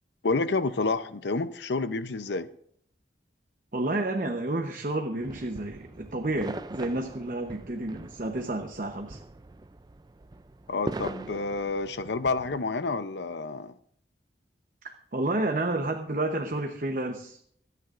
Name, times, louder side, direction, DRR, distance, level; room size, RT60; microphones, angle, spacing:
voice 1, 0.2-2.5 10.7-13.7, left 3 dB, 75° left, 0.6 m, -29 dB
voice 2, 3.7-9.2 14.8-17.5, right 2 dB, 45° right, 0.9 m, -30 dB
sound 1, 5.2-12.6, right 2 dB, 20° right, 0.4 m, -41 dB
24.0 x 9.3 x 2.5 m
head